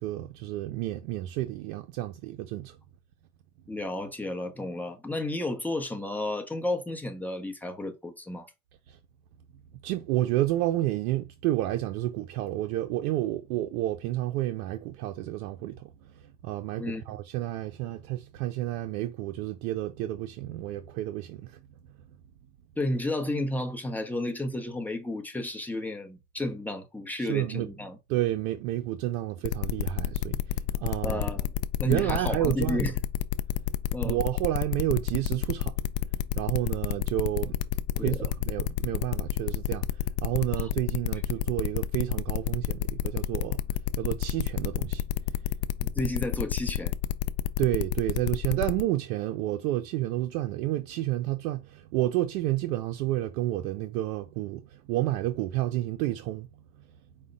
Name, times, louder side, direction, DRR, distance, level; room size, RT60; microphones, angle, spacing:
voice 1, 0.0-2.8 8.9-9.0 9.8-15.9 16.4-21.6 27.2-27.7 28.1-31.3 31.8-32.9 34.0-35.7 36.3-37.6 37.9-39.8 40.2-43.6 44.0-45.0 47.6-56.5, right 15 dB, 80° right, 0.6 m, -30 dB
voice 2, 3.7-8.5 16.8-17.2 22.8-28.0 31.0-31.5 31.8-33.0 33.9-34.2 38.0-38.2 40.5-40.7 45.8-47.0, left 1 dB, 5° left, 0.6 m, -32 dB
sound 1, 29.4-48.8, left 13 dB, 70° left, 0.5 m, -29 dB
4.9 x 2.2 x 3.8 m
supercardioid pair, 120°, 45 cm